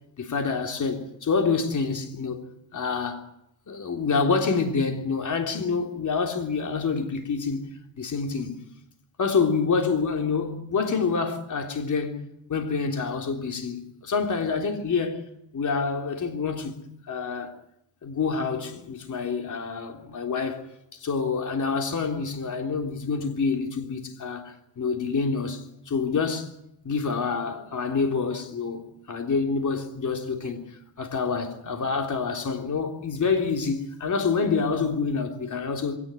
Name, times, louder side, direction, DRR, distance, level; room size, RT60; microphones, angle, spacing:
voice 1, 0.2-2.4 2.7-3.3 3.7-7.6 8.0-8.6 9.2-12.2 12.5-15.2 15.5-16.8 17.1-17.5 18.0-20.6 20.9-26.5 26.8-30.7 31.0-36.0, left 5 dB, 45° left, 3.5 m, -27 dB
21.5 x 18.0 x 9.2 m
cardioid pair, 160°, 43 cm